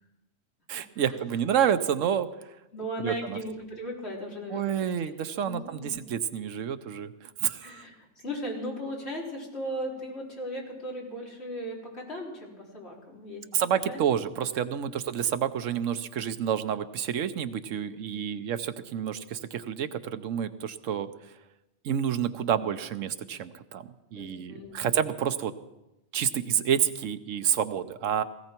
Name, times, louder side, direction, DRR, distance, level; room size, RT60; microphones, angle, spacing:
voice 1, 0.7-2.3 3.0-3.4 4.5-7.8 13.5-21.3 21.8-25.5 26.1-28.2, right 9 dB, 90° right, 12 dB, 1.1 m, -29 dB
voice 2, 2.7-4.7 5.4-6.0 7.6-13.4 13.9-14.0 14.9-15.0 17.9-18.2 24.1-24.9, equal, 55° left, -3 dB, 4.2 m, -37 dB
18.0 x 16.5 x 4.5 m, 0.97 s
omnidirectional pair, 1.3 m